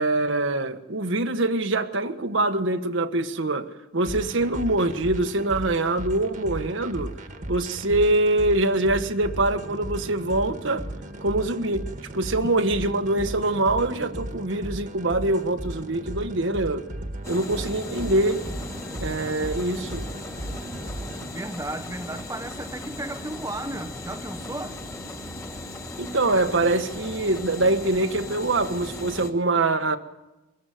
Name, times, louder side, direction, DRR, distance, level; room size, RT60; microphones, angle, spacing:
voice 1, 0.0-7.1 7.5-10.9 11.2-11.8 12.1-16.9 17.3-18.5 19.0-20.1 26.0-30.0, right 2 dB, 80° right, 1.4 m, -24 dB
sound 1, 4.0-21.3, right 1 dB, 40° right, 1.6 m, -36 dB
sound 2, 17.2-29.3, left 1 dB, 15° left, 2.3 m, -37 dB
voice 2, 21.2-24.8, right 1 dB, 15° right, 0.8 m, -34 dB
24.5 x 14.5 x 9.3 m
head